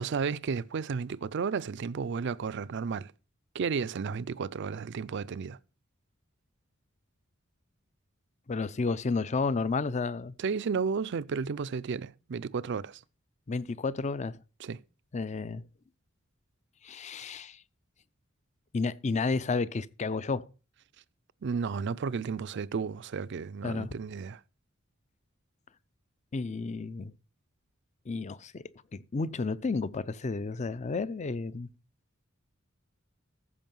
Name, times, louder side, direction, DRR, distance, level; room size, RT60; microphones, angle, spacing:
voice 1, 0.0-3.1 3.5-5.6 10.4-13.0 14.6-14.8 21.4-24.4, right 5 dB, 60° right, 0.4 m, -33 dB
voice 2, 8.5-10.3 13.5-14.3 15.1-15.6 16.8-17.6 18.7-20.5 23.6-24.0 26.3-27.1 28.1-28.6 28.9-31.7, left 4 dB, 35° left, 0.5 m, -31 dB
14.5 x 5.4 x 5.4 m
head